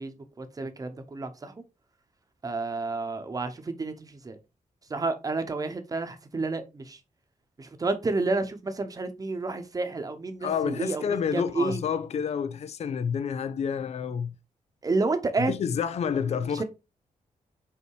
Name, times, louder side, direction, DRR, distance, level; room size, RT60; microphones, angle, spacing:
voice 1, 0.0-1.6 2.4-4.4 4.9-7.0 7.6-11.8 14.8-15.5 16.1-16.6, right 3 dB, 25° right, 1.0 m, -30 dB
voice 2, 10.4-14.3 15.5-16.6, left 7 dB, 55° left, 0.5 m, -29 dB
5.6 x 4.5 x 4.8 m
wide cardioid pair, 150°, 13 cm